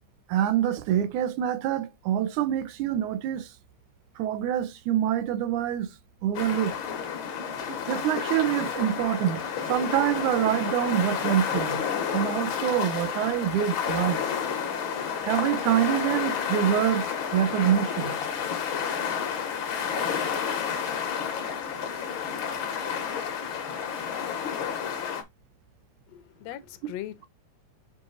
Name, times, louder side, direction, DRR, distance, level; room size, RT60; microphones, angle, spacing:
voice 1, 0.3-3.5 4.2-5.9 6.2-6.7 7.9-11.8 12.1-14.2 15.2-17.1 17.3-18.2, right 11 dB, 90° right, 2.2 m, -26 dB
sound 1, 6.3-25.2, left 7 dB, 60° left, 1.4 m, -30 dB
voice 2, 26.1-27.3, left 13 dB, 75° left, 1.6 m, -39 dB
7.0 x 3.5 x 3.8 m
omnidirectional pair, 3.4 m